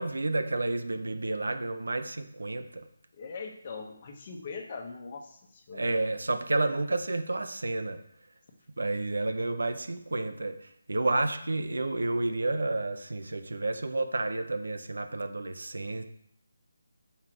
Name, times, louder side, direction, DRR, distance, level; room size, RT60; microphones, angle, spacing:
voice 1, 0.0-2.9 5.7-8.0 8.8-16.0, right 2 dB, 80° right, 8 dB, 0.9 m, -30 dB
voice 2, 3.2-5.8, left 4 dB, 35° left, 3 dB, 1.2 m, -41 dB
5.7 x 4.8 x 6.1 m, 0.68 s
figure-of-eight pair, 165°, 0 cm